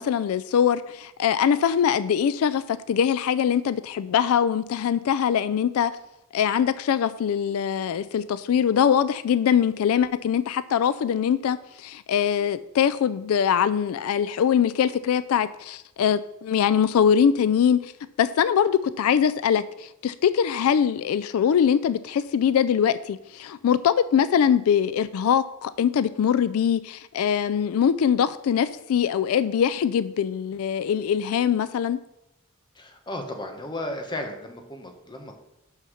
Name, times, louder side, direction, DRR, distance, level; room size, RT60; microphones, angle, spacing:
voice 1, 0.0-5.9 6.3-17.9 18.2-32.0, left 8 dB, 85° left, 14 dB, 0.3 m, -22 dB
voice 2, 32.7-35.3, left 1 dB, 20° left, 4 dB, 1.1 m, -34 dB
6.4 x 5.7 x 6.3 m, 0.86 s
head